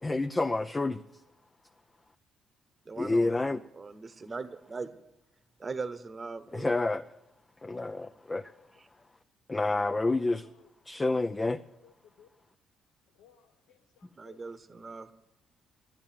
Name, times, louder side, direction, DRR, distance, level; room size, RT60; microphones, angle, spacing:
voice 1, 0.0-1.0 3.0-3.6 6.5-7.0 7.6-8.5 9.5-10.5 10.8-11.6, left 2 dB, 20° left, 0.5 m, -28 dB
voice 2, 2.9-3.3 3.8-5.0 5.6-6.7 14.1-15.1, right 4 dB, 35° right, 1.1 m, -39 dB
voice 3, 11.8-12.3 13.2-14.4, left 9 dB, 90° left, 0.8 m, -60 dB
11.0 x 10.5 x 9.1 m
cardioid pair, 80°, 0 cm